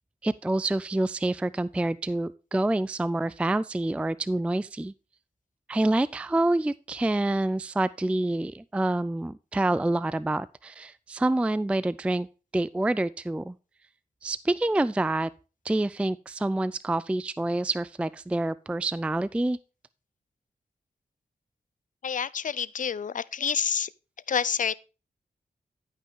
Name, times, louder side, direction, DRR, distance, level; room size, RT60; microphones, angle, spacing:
voice 1, 0.2-4.9 5.7-12.3 12.5-13.6 14.2-15.3 15.6-19.6, right 2 dB, 10° right, 0.3 m, -27 dB
voice 2, 22.0-23.9 24.3-24.8, left 7 dB, 60° left, 0.5 m, -28 dB
12.0 x 5.4 x 3.6 m
cardioid pair, 60°, 15 cm